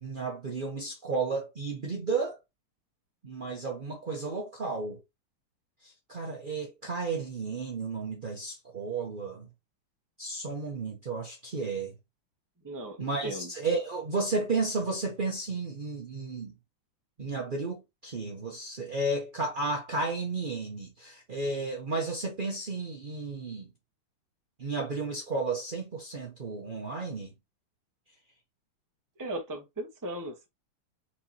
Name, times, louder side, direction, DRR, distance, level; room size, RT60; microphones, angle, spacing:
voice 1, 0.0-2.4 3.2-5.0 5.8-9.5 10.2-11.9 13.0-16.5 17.2-23.7 24.6-27.3, right 3 dB, 65° right, 0.4 m, -33 dB
voice 2, 12.6-13.5 29.2-30.5, right 1 dB, 15° right, 0.7 m, -37 dB
4.4 x 3.6 x 2.8 m
omnidirectional pair, 2.3 m